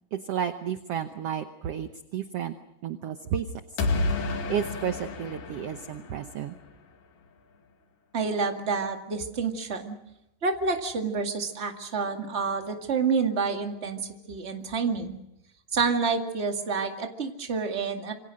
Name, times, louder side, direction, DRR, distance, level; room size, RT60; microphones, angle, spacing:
voice 1, 0.1-2.5 2.8-3.5 4.5-6.6, right 9 dB, 65° right, 8 dB, 1.6 m, -32 dB
sound 1, 3.8-6.7, left 3 dB, 80° left, 4.0 m, -30 dB
voice 2, 8.1-10.0 10.4-14.0 14.3-15.2 15.7-18.1, right 5 dB, 25° right, 4 dB, 1.9 m, -28 dB
27.0 x 25.0 x 6.4 m, 0.83 s
omnidirectional pair, 3.8 m